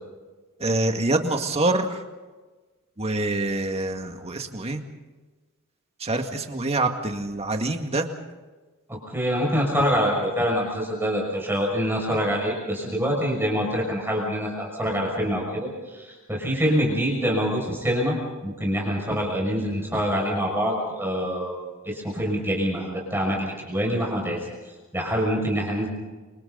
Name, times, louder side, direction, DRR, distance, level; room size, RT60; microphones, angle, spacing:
voice 1, 0.6-2.0 3.0-4.8 6.0-8.1, right 2 dB, 30° right, 4 dB, 2.1 m, -25 dB
voice 2, 8.9-18.2 18.4-21.5 21.8-24.4 24.9-25.9, equal, 10° right, -2 dB, 6.3 m, -25 dB
30.0 x 26.0 x 4.1 m, 1.3 s
head